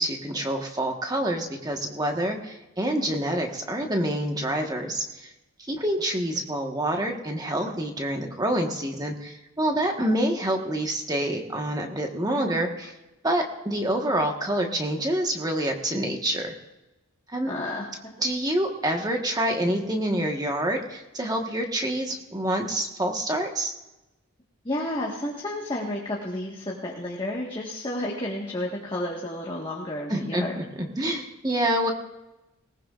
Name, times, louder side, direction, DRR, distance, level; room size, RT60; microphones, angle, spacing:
voice 1, 0.0-5.3 5.7-12.9 13.2-16.5 17.3-17.5 18.2-23.7 30.1-31.9, right 1 dB, 15° right, 2 dB, 1.4 m, -27 dB
voice 2, 17.5-18.1 24.6-30.5, left 1 dB, 20° left, -3 dB, 1.6 m, -31 dB
20.5 x 19.0 x 2.5 m, 1.0 s
head